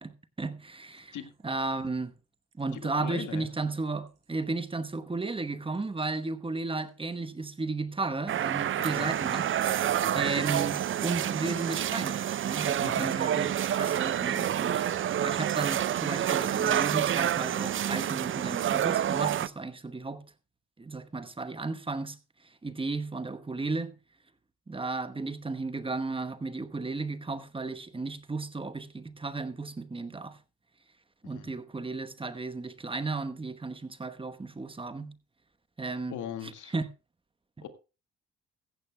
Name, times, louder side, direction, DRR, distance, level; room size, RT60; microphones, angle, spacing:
voice 1, 0.0-1.2 1.4-2.1 2.6-9.5 10.1-14.9 15.2-20.3 20.8-22.2 22.6-23.9 24.7-30.4 31.2-35.1 35.8-36.1 36.7-36.9, right 3 dB, 15° right, 1.0 m, -34 dB
sound 1, 1.1-5.4 5.7-6.3 6.8-7.2 7.5-7.6, right 6 dB, 85° right, 4.0 m, -62 dB
voice 2, 2.7-3.5 8.8-9.1 10.0-10.6 12.8-13.1 31.3-31.5 36.1-36.7 37.6-37.7, left 9 dB, 80° left, 1.8 m, -40 dB
sound 2, 8.3-19.5, right 10 dB, 45° right, 0.5 m, -28 dB
15.5 x 14.5 x 2.2 m
cardioid pair, 90°, 30 cm